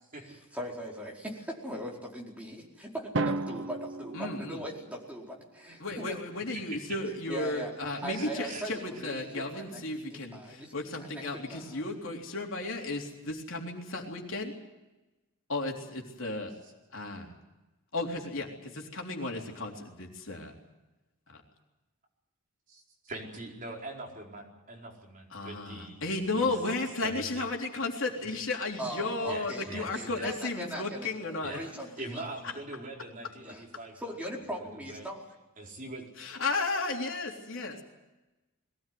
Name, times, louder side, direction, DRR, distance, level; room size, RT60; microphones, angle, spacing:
voice 1, 0.3-6.2 7.3-7.7 8.0-9.8 10.1-11.8 28.8-31.1 31.4-32.2 33.4-33.6 33.9-35.2, right 1 dB, 5° right, -2 dB, 4.7 m, -40 dB
Drum, 3.1-5.2, right 2 dB, 60° right, 1.1 m, -34 dB
voice 2, 4.1-4.6 5.8-14.5 15.5-16.5 16.9-17.3 17.9-20.5 21.3-21.4 25.3-31.6 36.2-37.8, left 2 dB, 60° left, 1 dB, 3.7 m, -34 dB
voice 3, 7.9-8.8 22.7-26.5 27.0-27.5 29.3-30.3 31.4-34.1 34.7-35.1 35.6-36.0, right 2 dB, 40° right, -1 dB, 4.8 m, -43 dB
22.0 x 18.0 x 9.5 m, 1.0 s
head